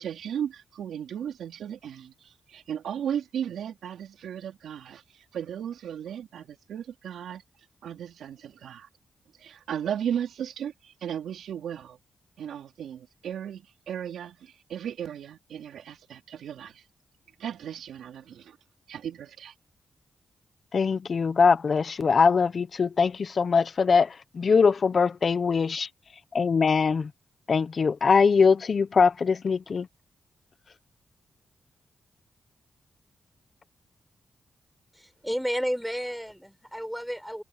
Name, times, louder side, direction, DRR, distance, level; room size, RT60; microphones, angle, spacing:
voice 1, 0.0-7.4 7.8-8.9 9.4-12.0 12.4-16.8 17.4-18.6 18.9-19.5, right 9 dB, 90° right, 3.9 m, -35 dB
voice 2, 20.7-25.9 26.3-27.1 27.5-29.9, left 5 dB, 55° left, 1.0 m, -22 dB
voice 3, 34.9-37.4, equal, ahead, 7.2 m, -32 dB
cardioid pair, 60°, 0 cm